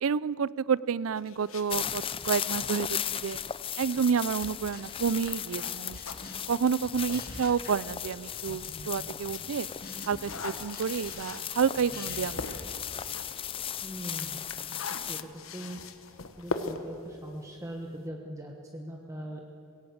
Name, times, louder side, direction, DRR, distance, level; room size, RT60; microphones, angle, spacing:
voice 1, 0.0-3.4 3.8-6.0 6.5-9.7 10.1-12.4, right 6 dB, 75° right, 20 dB, 0.4 m, -29 dB
sound 1, 1.2-7.9 8.4-18.1, left 3 dB, 70° left, 1.3 m, -43 dB
sound 2, 1.7-15.2, left 9 dB, 25° left, 0.4 m, -36 dB
sound 3, 4.4-6.5 6.8-8.9 9.2-13.6, left 2 dB, 45° left, 2.2 m, -46 dB
voice 2, 13.8-14.4 15.1-15.2 15.5-15.8 16.4-19.4, right 1 dB, 15° right, 1 dB, 1.2 m, -40 dB
21.5 x 17.5 x 8.0 m, 2.5 s
head